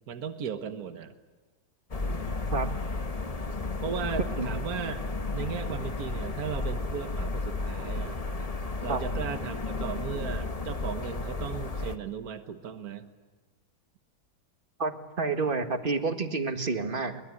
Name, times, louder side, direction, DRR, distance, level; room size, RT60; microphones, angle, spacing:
voice 1, 0.1-1.1 3.8-5.0 5.3-8.2 8.8-13.1, right 7 dB, 65° right, 8 dB, 1.7 m, -36 dB
sound 1, 1.9-12.0, left 3 dB, 25° left, 1.1 m, -33 dB
voice 2, 14.8-17.2, right 4 dB, 35° right, 6 dB, 1.9 m, -29 dB
23.0 x 21.5 x 9.7 m, 1.3 s
omnidirectional pair, 1.7 m